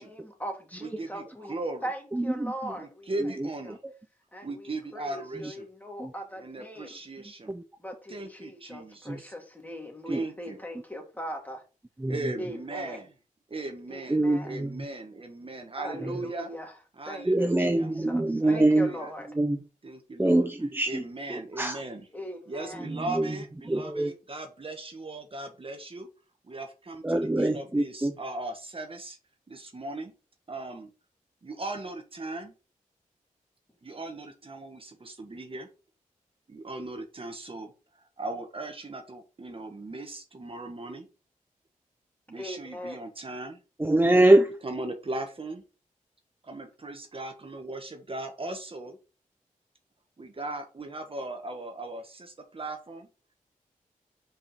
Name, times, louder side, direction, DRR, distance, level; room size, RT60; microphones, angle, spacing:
voice 1, 0.0-1.5 1.8-3.3 3.6-3.8 4.3-7.0 7.8-11.6 12.4-13.0 13.9-14.6 15.8-16.8 17.1-19.3 22.1-22.9 42.4-43.0, equal, 10° left, 2.8 m, -40 dB
voice 2, 0.8-1.9 2.7-3.8 4.4-5.7 6.4-7.5 8.1-9.3 10.1-10.6 12.1-13.1 13.5-16.5 17.0-17.9 18.4-19.1 19.8-20.5 20.9-22.1 22.5-26.1 26.4-29.2 29.5-30.1 30.5-30.9 31.4-32.5 33.8-35.7 36.5-41.0 42.3-43.6 44.6-45.6 46.4-48.9 50.2-53.1, right 2 dB, 40° right, 1.4 m, -38 dB
voice 3, 2.1-2.5 3.2-3.3 6.0-6.1 7.5-7.6 9.1-9.2 10.1-10.2 12.0-12.1 14.1-14.7 17.3-18.9 19.4-19.6 20.2-21.0 21.3-21.8 23.1-23.3 23.7-24.1 27.0-28.1 43.8-44.5, right 1 dB, 15° right, 0.8 m, -23 dB
5.2 x 5.2 x 4.4 m
cardioid pair, 50°, 14 cm